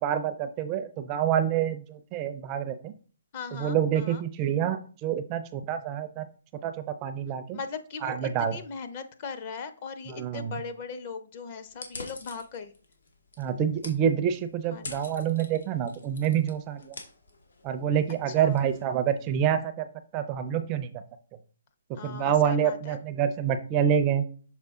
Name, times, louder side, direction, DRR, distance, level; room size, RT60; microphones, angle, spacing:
voice 1, 0.0-2.9 3.5-6.3 6.6-7.6 8.0-8.6 10.1-10.5 13.4-17.0 17.6-19.9 20.1-20.9 22.0-24.2, right 9 dB, 20° right, 9 dB, 0.4 m, -27 dB
voice 2, 3.3-4.2 7.5-12.7 14.7-15.0 18.3-18.6 22.0-23.0, left 5 dB, 35° left, 9 dB, 0.7 m, -39 dB
sound 1, 11.7-19.4, left 3 dB, 85° left, 1.8 m, -47 dB
6.6 x 4.1 x 3.6 m, 0.40 s
hypercardioid pair, 160°, 0 cm